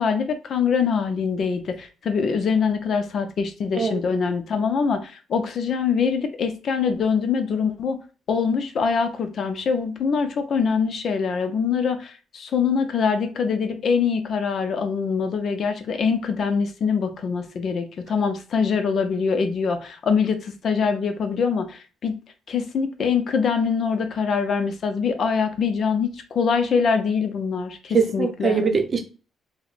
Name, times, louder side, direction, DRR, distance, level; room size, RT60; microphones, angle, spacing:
voice 1, 0.0-8.0 8.3-22.1 22.5-28.6, left 5 dB, 60° left, 0.6 m, -24 dB
voice 2, 27.9-29.0, right 5 dB, 40° right, 0.7 m, -22 dB
4.7 x 2.1 x 2.5 m
cardioid pair, 90°, 0 cm